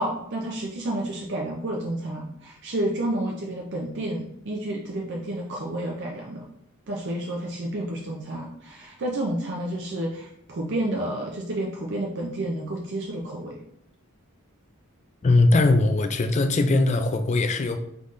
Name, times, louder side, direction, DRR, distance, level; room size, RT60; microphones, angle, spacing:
voice 1, 0.0-6.4 6.9-13.6, right 1 dB, 55° right, -1 dB, 0.5 m, -30 dB
voice 2, 15.2-17.8, left 2 dB, 30° left, 8 dB, 0.3 m, -20 dB
3.9 x 3.6 x 3.1 m, 0.73 s
head